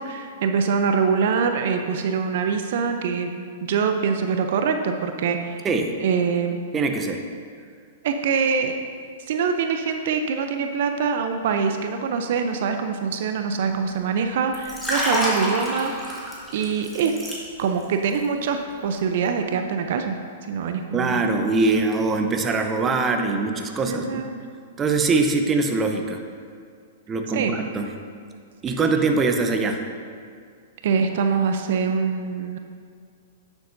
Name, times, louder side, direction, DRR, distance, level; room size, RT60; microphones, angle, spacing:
voice 1, 0.0-5.7 6.0-6.6 8.0-8.9 9.3-16.2 16.5-17.1 17.6-20.2 20.5-21.2 23.9-24.3 27.3-27.5 30.8-32.6, right 6 dB, 60° right, 6 dB, 0.5 m, -24 dB
voice 2, 6.7-7.2 20.9-24.2 24.8-26.2 27.1-27.9 28.6-29.8, right 3 dB, 20° right, 5 dB, 0.7 m, -22 dB
Liquid, 14.5-17.8 18.1-18.4, equal, 5° left, 1.8 m, -27 dB
10.5 x 7.1 x 2.6 m, 2.2 s
hypercardioid pair, 120°, 0 cm